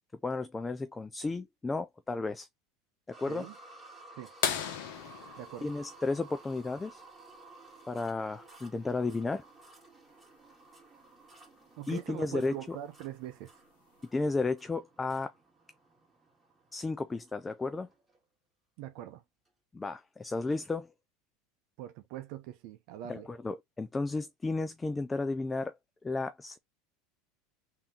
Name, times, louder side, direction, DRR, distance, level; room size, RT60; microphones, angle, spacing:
voice 1, 0.2-2.5 3.1-3.5 5.6-7.0 7.9-9.4 11.9-12.8 14.1-15.3 16.7-17.9 19.7-20.9 23.1-25.8 26.0-26.6, left 3 dB, 15° left, 0.4 m, -33 dB
sound 1, 3.1-18.2 18.9-19.0 19.5-19.6, right 2 dB, 10° right, 2.1 m, -55 dB
sound 2, 4.4-6.9 8.8-8.9 11.1-11.2 12.9-13.2 14.0-14.1, left 8 dB, 70° left, 1.0 m, -35 dB
voice 2, 5.4-5.7 11.8-13.6 18.8-19.2 21.8-23.3, right 12 dB, 60° right, 0.7 m, -42 dB
3.6 x 2.9 x 3.5 m
supercardioid pair, 110°, 0 cm